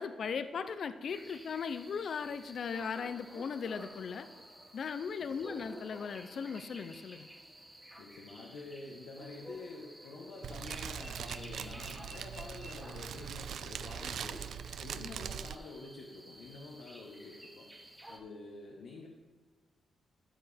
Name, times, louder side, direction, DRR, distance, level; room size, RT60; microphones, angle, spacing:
voice 1, 0.0-4.3 4.7-7.3, left 6 dB, 60° left, 11 dB, 0.5 m, -38 dB
sound 1, 1.1-18.2, equal, 5° right, 1.7 m, -52 dB
voice 2, 5.2-5.6 8.0-14.4 14.8-17.7 18.1-19.1, left 3 dB, 90° left, -2 dB, 1.3 m, -48 dB
Fire, 10.4-15.5, right 8 dB, 80° right, 0.4 m, -41 dB
13.0 x 7.6 x 3.4 m, 1.4 s
cardioid pair, 105°, 0 cm